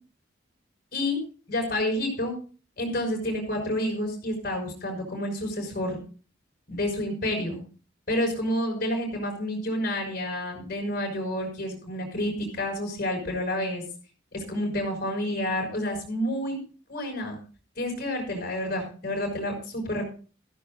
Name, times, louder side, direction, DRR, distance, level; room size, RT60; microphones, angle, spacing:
voice 1, 1.5-2.3 2.8-6.0 6.7-7.6 8.1-13.8 14.3-16.6 16.9-17.4 17.8-20.1, left 1 dB, 50° left, 1 dB, 5.8 m, -29 dB
16.0 x 14.5 x 2.6 m, 0.38 s
head